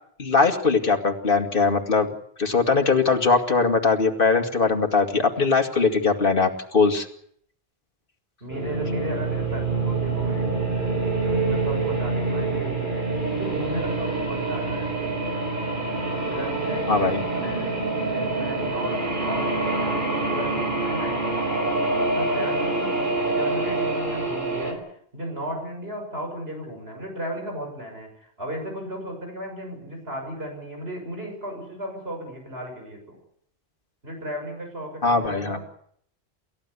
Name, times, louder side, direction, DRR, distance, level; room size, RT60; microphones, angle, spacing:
voice 1, 0.2-2.1 2.4-7.1 16.9-17.2 35.0-35.6, left 4 dB, 60° left, 4 dB, 2.4 m, -21 dB
voice 2, 8.4-10.5 11.1-13.1 13.3-14.9 16.2-21.2 22.0-24.8 25.1-33.2 34.0-35.6, equal, 75° right, 2 dB, 6.9 m, -35 dB
sound 1, 8.5-24.7, right 3 dB, 50° right, 5.4 m, -26 dB
29.0 x 14.5 x 8.4 m, 0.66 s
omnidirectional pair, 1.0 m